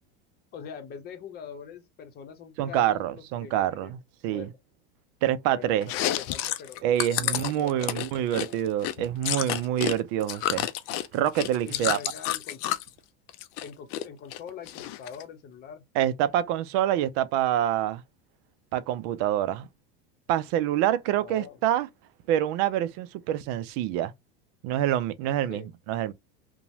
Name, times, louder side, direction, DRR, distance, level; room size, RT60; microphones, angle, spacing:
voice 1, 0.5-3.9 4.2-4.5 5.5-6.9 7.1-8.6 11.6-12.8 13.6-15.8 21.2-21.6 25.5-25.7, left 7 dB, 35° left, 0.9 m, -43 dB
voice 2, 2.6-4.5 5.2-5.9 6.8-10.7 11.1-12.0 16.0-18.0 18.7-19.7 20.3-21.9 22.3-24.1 24.6-25.6 25.9-26.1, right 11 dB, 55° right, 0.5 m, -26 dB
Chewing mastication, 5.8-9.9 10.2-12.9 13.3-14.0 14.3-15.2, left 13 dB, 50° left, 0.5 m, -30 dB
2.9 x 2.2 x 2.7 m
supercardioid pair, 130°, 29 cm